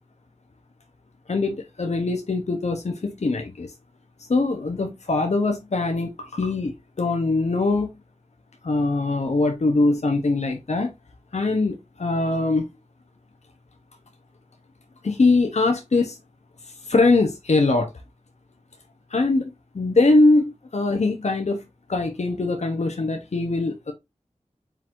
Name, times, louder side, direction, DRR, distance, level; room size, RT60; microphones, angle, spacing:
voice 1, 1.3-3.7 4.3-7.9 8.6-10.9 11.3-12.6 15.0-16.2 16.8-17.9 19.1-21.6 21.9-23.9, left 3 dB, 65° left, 0.9 m, -22 dB
4.5 x 4.0 x 2.5 m
wide cardioid pair, 45°, 12 cm